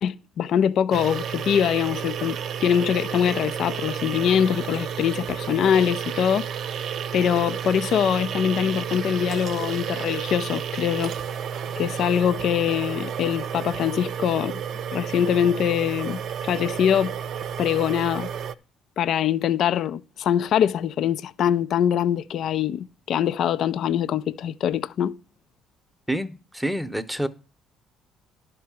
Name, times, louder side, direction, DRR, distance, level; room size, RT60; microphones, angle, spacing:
voice 1, 0.0-6.5 7.1-11.1 11.8-14.6 14.9-16.2 16.5-17.1 17.6-18.3 19.0-25.1, left 9 dB, 60° left, 0.5 m, -23 dB
sound 1, 0.9-18.5, right 8 dB, 60° right, 0.6 m, -31 dB
voice 2, 26.1-27.3, right 1 dB, ahead, 0.9 m, -28 dB
11.5 x 4.7 x 7.4 m
cardioid pair, 110°, 0 cm